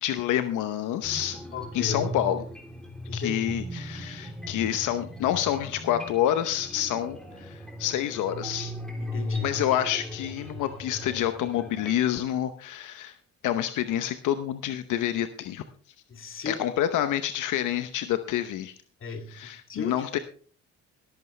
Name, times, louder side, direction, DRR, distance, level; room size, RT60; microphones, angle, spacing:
voice 1, 0.0-1.4 1.7-2.4 3.1-8.7 9.4-13.1 13.4-15.6 16.4-18.7 19.3-20.2, left 11 dB, 85° left, 9 dB, 0.9 m, -28 dB
sound 1, 1.0-11.9, equal, ahead, 3.1 m, -39 dB
voice 2, 1.5-2.1 3.1-3.6 9.0-9.5 16.1-16.6 19.0-20.1, left 4 dB, 45° left, 5 dB, 2.3 m, -34 dB
22.0 x 8.1 x 3.2 m, 0.42 s
cardioid pair, 90°, 30 cm